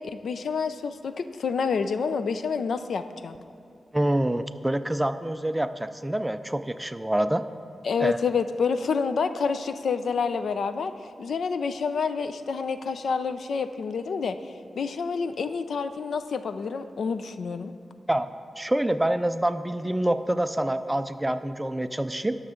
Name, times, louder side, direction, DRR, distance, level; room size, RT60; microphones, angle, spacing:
voice 1, 0.0-3.4 7.8-10.9 11.2-14.4 14.8-17.7, left 5 dB, 80° left, 10 dB, 0.4 m, -28 dB
voice 2, 3.9-7.4 8.0-8.2 18.1-18.3 18.6-22.4, right 1 dB, 10° right, 10 dB, 0.3 m, -26 dB
18.5 x 6.5 x 3.7 m, 2.6 s
wide cardioid pair, 135°, 0 cm